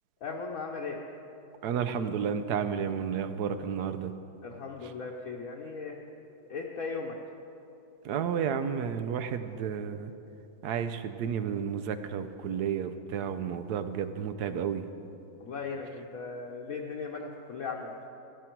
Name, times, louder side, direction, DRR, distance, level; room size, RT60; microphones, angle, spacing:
voice 1, 0.2-1.0 4.4-6.0 6.5-7.1 15.4-17.9, left 4 dB, 65° left, -2 dB, 1.2 m, -37 dB
voice 2, 1.6-4.1 8.0-10.1 10.6-14.8, right 7 dB, 80° right, 10 dB, 1.2 m, -31 dB
14.0 x 11.0 x 4.5 m, 2.8 s
omnidirectional pair, 1.7 m